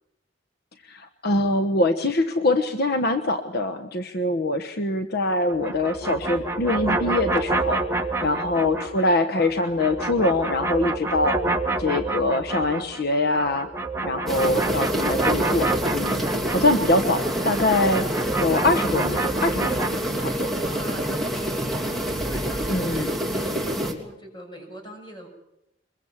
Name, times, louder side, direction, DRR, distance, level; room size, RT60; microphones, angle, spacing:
voice 1, 0.9-7.8 8.2-11.4 11.8-13.7 14.0-18.1 18.4-19.9 20.2-20.5 22.7-23.1, left 2 dB, 60° left, 8 dB, 1.2 m, -24 dB
sound 1, 5.5-9.1 9.4-13.0 13.3-19.9, right 2 dB, 15° right, 1.6 m, -28 dB
voice 2, 8.2-8.8 20.5-25.3, equal, 25° left, 3 dB, 6.3 m, -42 dB
sound 2, 14.3-23.9, equal, ahead, 2.9 m, -27 dB
23.0 x 22.0 x 7.4 m, 0.84 s
head